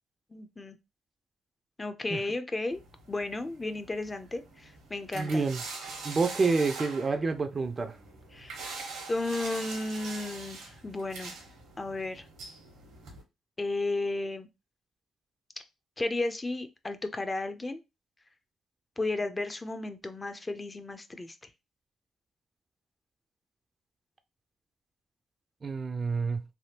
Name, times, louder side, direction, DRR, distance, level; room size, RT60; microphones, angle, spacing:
voice 1, 0.3-0.8 1.8-2.8 3.1-5.4 8.3-8.8 9.1-11.3 11.8-12.3 13.6-14.5 16.0-17.8 19.0-21.5, left 2 dB, 20° left, 0.5 m, -33 dB
sound 1, 2.7-13.2, right 4 dB, 85° right, 1.1 m, -44 dB
voice 2, 5.1-5.6 6.0-7.9 25.6-26.4, right 4 dB, 35° right, 0.4 m, -28 dB
3.3 x 2.3 x 2.8 m
cardioid pair, 90°, 0 cm